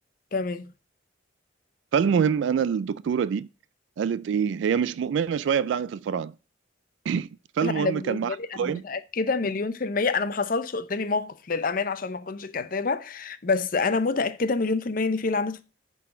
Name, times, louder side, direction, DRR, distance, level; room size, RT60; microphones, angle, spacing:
voice 1, 0.3-0.7 7.6-15.6, left 4 dB, 45° left, 0.6 m, -27 dB
voice 2, 1.9-3.5 4.0-6.3 7.1-7.3 7.5-8.8, right 7 dB, 70° right, 0.3 m, -25 dB
10.0 x 4.0 x 3.7 m
head